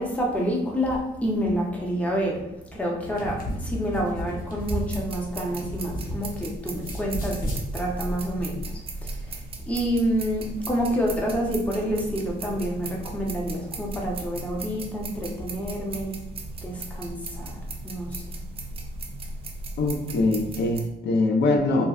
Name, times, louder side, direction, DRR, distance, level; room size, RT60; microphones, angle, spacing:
voice 1, 0.0-2.4 2.7-8.6 9.0-9.2 9.7-16.2 16.6-17.6 17.8-18.4, equal, 10° left, -2 dB, 0.7 m, -28 dB
sound 1, 3.0-6.4 6.7-7.6, equal, 55° left, 0.9 m, -33 dB
sound 2, 4.6-20.8, right 2 dB, 35° right, 0.4 m, -37 dB
voice 2, 19.8-21.9, left 2 dB, 80° left, 3 dB, 0.6 m, -23 dB
3.9 x 2.1 x 2.3 m, 0.95 s
cardioid pair, 110°, 17 cm